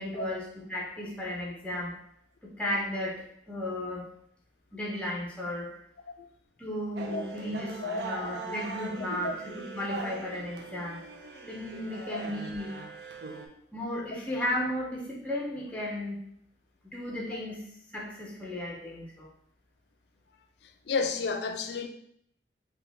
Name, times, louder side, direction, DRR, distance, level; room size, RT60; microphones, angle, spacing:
voice 1, 0.0-1.9 2.4-4.1 4.7-5.7 6.6-11.0 11.5-12.7 13.7-16.2 16.8-17.6 17.9-19.3, left 1 dB, 5° left, 0.5 m, -34 dB
sound 1, 7.0-13.5, right 3 dB, 60° right, 0.5 m, -40 dB
voice 2, 20.9-21.9, left 4 dB, 60° left, 0.3 m, -30 dB
3.7 x 2.2 x 3.3 m
head